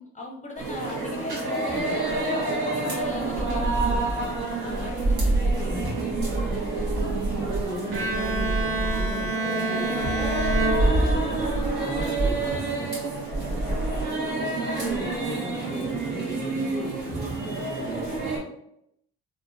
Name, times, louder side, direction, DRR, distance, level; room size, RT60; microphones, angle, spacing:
voice 1, 0.0-5.9 13.4-13.8, left 2 dB, 25° left, 0 dB, 0.6 m, -39 dB
sound 1, 0.6-18.4, right 2 dB, 70° right, 1.4 m, -27 dB
voice 2, 7.3-11.5 11.8-13.0 14.4-18.4, equal, 10° right, 0 dB, 0.7 m, -38 dB
Bowed string instrument, 7.9-11.6, right 2 dB, 50° right, 0.7 m, -28 dB
3.5 x 2.6 x 2.6 m, 0.77 s
cardioid pair, 90°, 30 cm